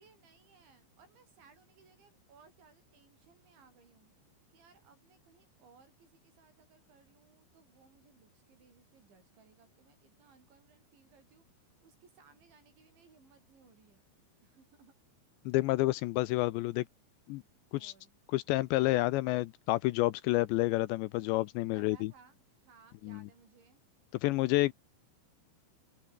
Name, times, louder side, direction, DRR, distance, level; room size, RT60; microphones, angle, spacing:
voice 1, 0.0-4.1 4.5-14.1 14.4-14.9 17.7-18.1 21.7-23.8, right 5 dB, 65° right, 9.5 m, -63 dB
voice 2, 15.5-16.9 17.3-17.4 17.7-17.9 18.3-22.1 23.1-23.2 24.2-24.7, left 19 dB, 80° left, 2.7 m, -29 dB
omnidirectional pair, 5.6 m